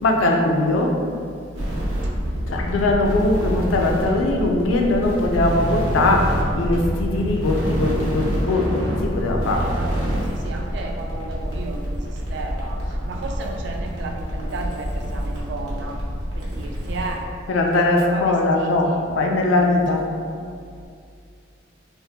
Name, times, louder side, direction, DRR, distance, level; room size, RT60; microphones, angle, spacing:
voice 1, 0.0-1.0 2.5-9.7 17.5-20.1, left 2 dB, 70° left, 1 dB, 0.4 m, -20 dB
sound 1, 1.5-17.1, equal, 90° right, 0.8 m, -26 dB
voice 2, 3.6-4.1 9.6-16.0 16.4-17.2 17.8-19.0 19.6-19.8 20.1-20.5, right 3 dB, 55° right, 2 dB, 0.3 m, -34 dB
3.4 x 2.1 x 2.7 m, 2.2 s
head